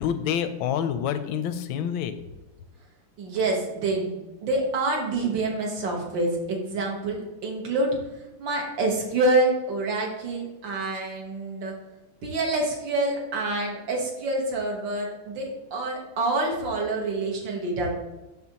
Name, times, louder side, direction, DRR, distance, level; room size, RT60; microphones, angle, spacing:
voice 1, 0.0-2.1, left 9 dB, 85° left, 10 dB, 1.4 m, -27 dB
voice 2, 3.2-8.0 8.4-11.7 12.2-17.9, right 2 dB, 70° right, 0 dB, 2.0 m, -27 dB
11.5 x 3.9 x 2.9 m, 1.0 s
omnidirectional pair, 2.1 m